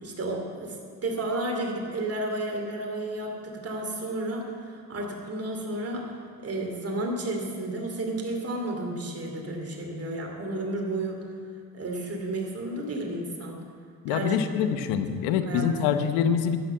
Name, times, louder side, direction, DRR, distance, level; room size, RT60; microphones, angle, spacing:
voice 1, 0.0-0.8 1.0-6.0 6.4-11.2 11.7-13.6 14.1-14.4 15.4-15.6, right 2 dB, 35° right, 0 dB, 2.7 m, -32 dB
voice 2, 14.0-16.6, left 8 dB, 80° left, 9 dB, 1.0 m, -25 dB
11.5 x 7.2 x 7.9 m, 2.1 s
supercardioid pair, 70°, 41 cm